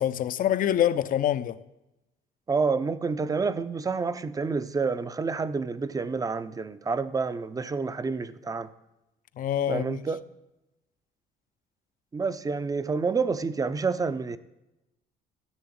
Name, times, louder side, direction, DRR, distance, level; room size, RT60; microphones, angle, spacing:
voice 1, 0.0-1.6 9.4-10.0, left 11 dB, 55° left, 0.7 m, -25 dB
voice 2, 2.5-8.7 9.7-10.2 12.1-14.4, right 4 dB, 20° right, 0.7 m, -28 dB
14.0 x 6.8 x 8.8 m
cardioid pair, 110°, 17 cm